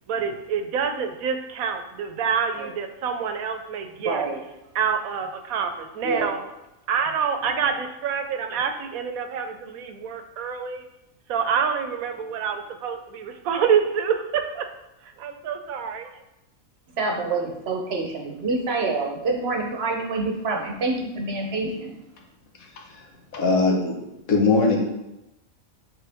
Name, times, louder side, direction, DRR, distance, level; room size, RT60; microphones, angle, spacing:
voice 1, 0.1-4.3 4.7-6.4 6.9-10.9 11.3-14.7 15.0-16.1, right 6 dB, 80° right, 6 dB, 1.1 m, -27 dB
voice 2, 4.0-4.4 6.0-6.4 17.0-22.0, right 3 dB, 55° right, 1 dB, 0.9 m, -27 dB
voice 3, 23.3-23.9 24.3-24.8, left 3 dB, 75° left, 0 dB, 1.5 m, -20 dB
7.6 x 3.7 x 3.4 m, 0.92 s
omnidirectional pair, 1.5 m